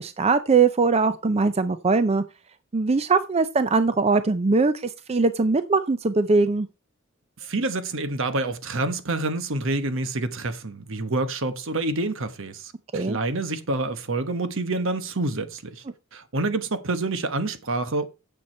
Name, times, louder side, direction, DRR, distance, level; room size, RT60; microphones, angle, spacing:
voice 1, 0.0-2.2 2.7-6.7 12.9-13.2, right 4 dB, 30° right, 0.5 m, -21 dB
voice 2, 7.4-15.8 16.1-18.1, right 2 dB, 65° right, 1.2 m, -27 dB
9.2 x 7.1 x 4.4 m
head